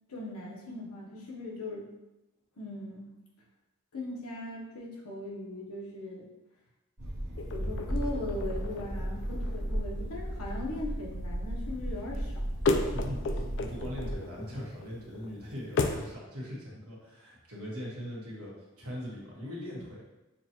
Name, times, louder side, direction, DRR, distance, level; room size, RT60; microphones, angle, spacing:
voice 1, 0.1-1.9 2.6-3.1 3.9-6.3 7.5-12.4, left 2 dB, 80° left, -2 dB, 1.0 m, -39 dB
sound 1, 7.0-14.2, right 1 dB, 50° right, 0.8 m, -35 dB
sound 2, 7.4-16.1, left 3 dB, 55° left, 0.4 m, -36 dB
voice 2, 12.9-20.0, equal, 70° right, -4 dB, 1.3 m, -41 dB
6.4 x 2.3 x 2.9 m, 0.99 s
head